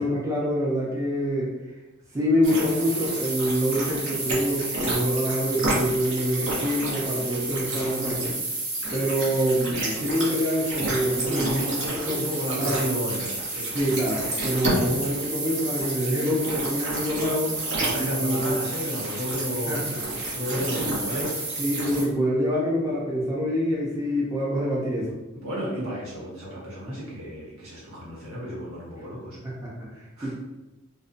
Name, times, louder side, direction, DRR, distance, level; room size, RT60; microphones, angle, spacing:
voice 1, 0.0-1.5 2.1-8.4 8.9-12.2 12.6-12.9 13.7-17.5 18.0-18.6 19.7-20.0 20.8-21.0 21.6-25.1 29.4-30.3, equal, 15° right, -6 dB, 0.5 m, -26 dB
sound 1, 2.4-22.0, right 2 dB, 60° right, 0.7 m, -30 dB
voice 2, 11.3-11.7 12.1-14.0 17.7-20.0 20.3-21.3 25.3-29.4 30.2-30.3, equal, 85° right, -6 dB, 1.1 m, -32 dB
2.6 x 2.1 x 2.5 m, 1.0 s
head